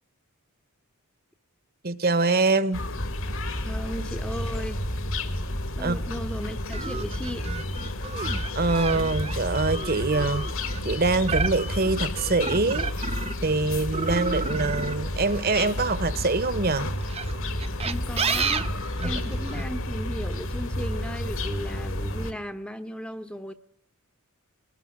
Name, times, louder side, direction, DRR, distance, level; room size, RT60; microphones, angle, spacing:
voice 1, 1.8-2.9 5.8-6.0 8.5-10.5 10.8-13.1 13.4-16.9 19.0-19.1, right 3 dB, 45° right, 1.2 m, -24 dB
sound 1, 2.7-22.3, left 1 dB, 60° left, 2.3 m, -31 dB
voice 2, 3.6-4.8 5.7-7.5 17.8-18.7 19.0-23.5, equal, 5° left, 1.0 m, -36 dB
sound 2, 6.7-13.5 13.9-16.3 17.0-19.6, right 4 dB, 30° right, 1.0 m, -31 dB
23.0 x 19.5 x 9.9 m
head